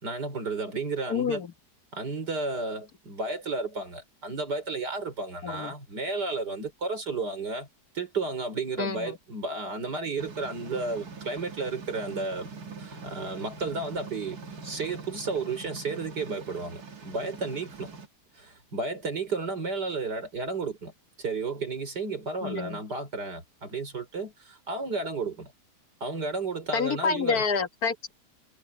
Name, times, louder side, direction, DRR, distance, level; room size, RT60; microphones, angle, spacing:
voice 1, 0.0-1.4 1.9-7.7 7.9-12.5 12.8-17.9 18.3-20.9 21.2-25.5 26.0-27.4, right 3 dB, 80° right, 5.2 m, -33 dB
voice 2, 1.1-1.5 5.4-5.7 8.8-9.1 22.4-22.8 26.7-28.1, left 5 dB, 65° left, 2.0 m, -28 dB
sound 1, 10.2-18.1, right 4 dB, 65° right, 2.4 m, -43 dB
omnidirectional pair, 1.8 m